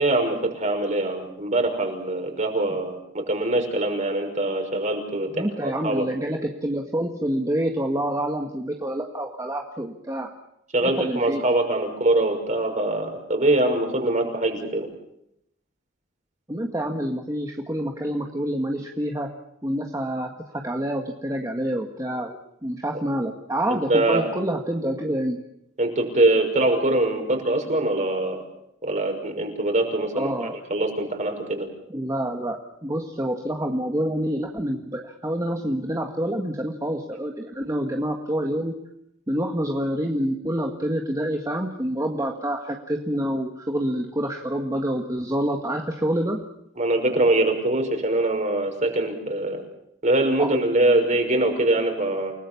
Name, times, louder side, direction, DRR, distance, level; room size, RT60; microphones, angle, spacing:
voice 1, 0.0-6.1 10.7-14.9 23.7-24.3 25.8-28.4 28.8-30.3 30.7-31.7 46.8-49.6 50.0-52.3, right 2 dB, 40° right, 4 dB, 6.0 m, -23 dB
voice 2, 5.3-10.3 10.8-11.5 16.5-19.3 19.6-25.4 30.1-30.6 31.9-38.7 39.3-46.4 50.4-50.5, right 1 dB, 20° right, 2 dB, 1.8 m, -27 dB
29.5 x 19.0 x 7.2 m, 0.77 s
head